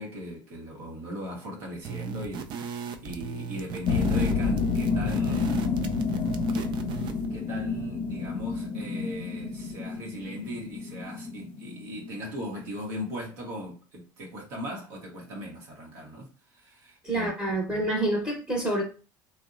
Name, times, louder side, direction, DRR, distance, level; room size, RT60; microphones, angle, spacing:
voice 1, 0.0-5.9 6.5-6.8 7.3-17.8, equal, 75° right, 0.8 m, -39 dB
sound 1, 1.8-7.3, right 6 dB, 45° right, 0.4 m, -37 dB
sound 2, 3.9-12.8, left 4 dB, 50° left, 0.4 m, -29 dB
voice 2, 17.0-18.8, right 1 dB, 10° right, 0.8 m, -27 dB
2.7 x 2.1 x 2.4 m
hypercardioid pair, 85°, 11 cm